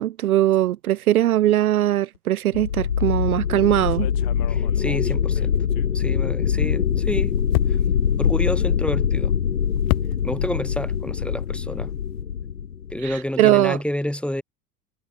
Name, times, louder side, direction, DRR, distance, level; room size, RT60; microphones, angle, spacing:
voice 1, 0.0-4.1 13.0-13.8, right 13 dB, 70° right, 1.0 m, -20 dB
sound 1, 2.5-13.2, left 8 dB, 75° left, 3.4 m, -23 dB
sound 2, 3.6-6.3 6.6-10.7 10.9-12.2, left 28 dB, 50° left, 3.0 m, -33 dB
voice 2, 4.5-5.5 5.9-7.3 8.2-9.3 10.2-11.9 12.9-14.4, left 1 dB, ahead, 4.9 m, -29 dB
figure-of-eight pair, 75°, 46 cm